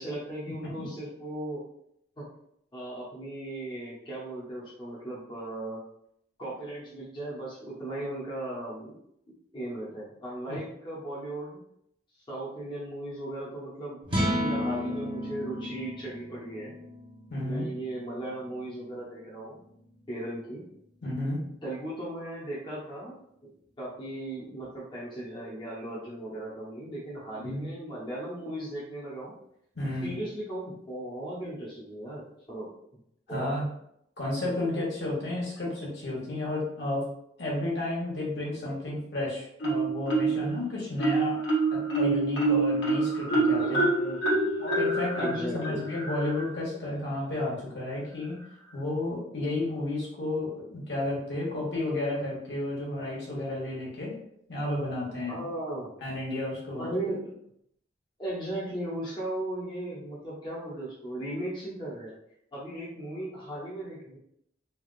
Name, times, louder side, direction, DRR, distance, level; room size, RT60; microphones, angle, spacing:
voice 1, 0.0-1.6 2.2-2.3 2.7-5.8 6.4-9.0 9.5-11.6 12.3-16.7 17.4-19.6 20.1-20.6 21.6-23.1 23.8-29.3 30.0-32.2 32.5-32.7 33.3-33.5 43.6-44.5 45.2-45.8 55.3-55.9 56.8-57.4 58.2-62.1 62.5-64.2, right 1 dB, 25° left, -6 dB, 0.7 m, -37 dB
sound 1, 14.0-20.4, equal, 25° right, 0.8 m, -34 dB
voice 2, 17.3-17.7 21.0-21.4 27.4-27.6 29.7-30.2 33.3-33.7 34.2-37.1 37.4-41.4 41.7-43.8 44.6-48.4 48.7-54.2 54.5-55.4 56.0-56.9, left 1 dB, 70° left, -4 dB, 1.1 m, -32 dB
Marimba xylophone, 39.6-40.5 41.0-46.5, right 2 dB, 85° left, 1.0 m, -26 dB
3.4 x 2.3 x 2.4 m, 0.74 s
head